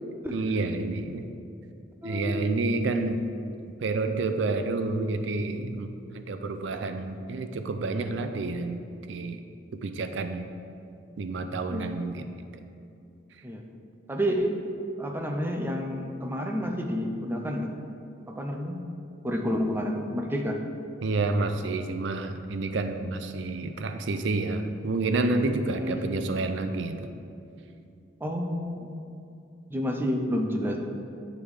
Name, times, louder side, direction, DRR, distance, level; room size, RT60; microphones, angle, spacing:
voice 1, 0.3-1.3 2.0-3.2 3.8-8.8 9.1-9.4 9.7-10.5 11.2-12.2 21.0-27.1, right 3 dB, 70° right, 7 dB, 0.4 m, -29 dB
voice 2, 2.0-2.6 11.7-11.9 13.4-13.6 14.1-14.6 15.0-17.7 18.3-18.8 19.2-20.6 25.7-26.1 28.2-28.9 29.7-30.8, equal, 10° right, 2 dB, 0.5 m, -29 dB
8.9 x 3.5 x 4.8 m, 2.6 s
head